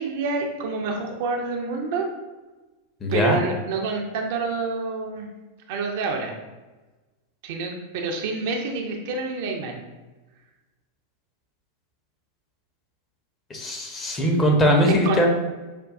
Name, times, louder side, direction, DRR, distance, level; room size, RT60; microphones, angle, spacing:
voice 1, 0.0-2.1 3.1-5.3 5.7-6.4 7.4-9.8 14.9-15.3, right 4 dB, 50° right, 2 dB, 0.4 m, -27 dB
voice 2, 3.0-3.4 13.5-15.3, equal, 20° left, 1 dB, 0.6 m, -20 dB
5.0 x 2.2 x 2.3 m, 1.2 s
figure-of-eight pair, 90°, 0 cm